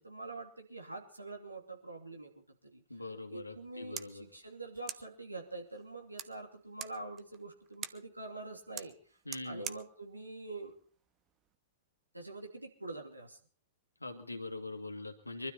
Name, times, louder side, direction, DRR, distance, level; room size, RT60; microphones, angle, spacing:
voice 1, 0.0-2.3 2.7-2.8 3.3-8.9 9.4-10.8 12.1-13.4, right 2 dB, 85° right, 2 dB, 2.8 m, -45 dB
voice 2, 2.9-4.2 9.3-9.7 14.0-15.5, left 2 dB, 85° left, 6 dB, 1.9 m, -42 dB
sound 1, 3.5-11.6, right 9 dB, 25° right, 0.8 m, -49 dB
23.5 x 12.5 x 4.3 m, 0.42 s
figure-of-eight pair, 100°, 0 cm